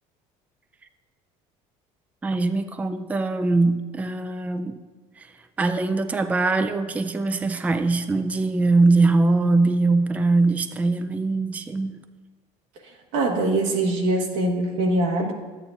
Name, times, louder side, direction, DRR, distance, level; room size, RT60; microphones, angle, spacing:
voice 1, 2.2-4.8 5.2-5.3 5.6-12.0, right 3 dB, 10° right, 8 dB, 0.4 m, -22 dB
voice 2, 13.1-15.3, right 2 dB, 85° right, 1 dB, 1.4 m, -23 dB
11.5 x 8.7 x 2.4 m, 1.4 s
supercardioid pair, 105°, 15 cm